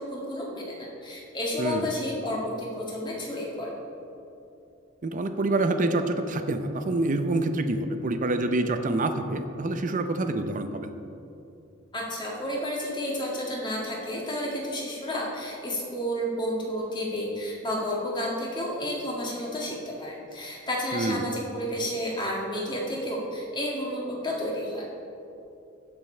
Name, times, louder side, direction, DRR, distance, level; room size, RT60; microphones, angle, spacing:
voice 1, 0.0-3.7 11.9-24.9, equal, 25° left, -3 dB, 1.8 m, -31 dB
voice 2, 1.6-1.9 5.0-10.9 20.9-21.3, right 2 dB, 40° right, 8 dB, 0.6 m, -27 dB
16.0 x 5.3 x 4.4 m, 2.8 s
head